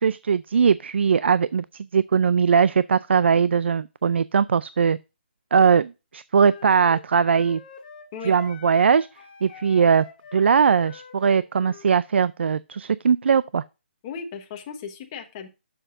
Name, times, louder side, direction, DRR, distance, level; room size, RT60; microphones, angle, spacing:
voice 1, 0.0-5.0 5.5-7.6 8.2-9.1 9.4-10.1 10.3-13.6, right 6 dB, 75° right, 0.4 m, -20 dB
Wind instrument woodwind instrument, 6.4-11.9, left 6 dB, 40° left, 1.9 m, -45 dB
voice 2, 14.0-15.5, left 6 dB, 25° left, 1.1 m, -36 dB
9.9 x 7.0 x 2.5 m
hypercardioid pair, 170°, 6 cm